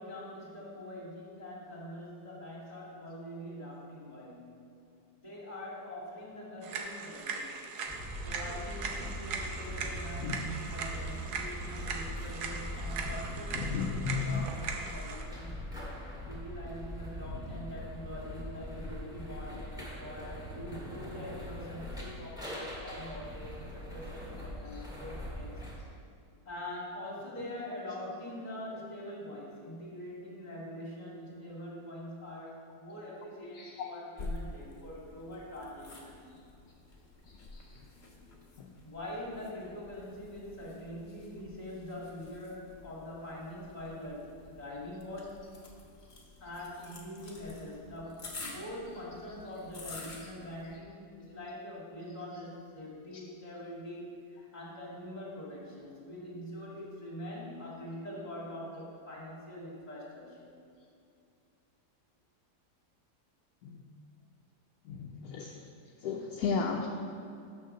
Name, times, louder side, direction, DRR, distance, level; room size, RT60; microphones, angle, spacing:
voice 1, 0.0-4.5 5.2-7.7 8.2-15.6 16.2-25.5 26.4-36.2 38.8-45.5 46.4-60.6, left 1 dB, 25° left, -5 dB, 2.1 m, -44 dB
sound 1, 6.6-15.2, right 4 dB, 70° right, 1.3 m, -40 dB
sound 2, 7.9-25.7, equal, ahead, 1.7 m, -41 dB
voice 2, 10.2-10.5 13.3-14.5 24.7-24.8 33.5-33.9 37.3-37.8 38.6-38.7 50.6-50.8 63.6-63.8 64.8-65.7 66.0-66.9, left 5 dB, 70° left, 0 dB, 1.0 m, -35 dB
sound 3, 34.2-50.8, left 2 dB, 40° left, 1.2 m, -49 dB
6.4 x 6.0 x 6.5 m, 2.5 s
omnidirectional pair, 1.8 m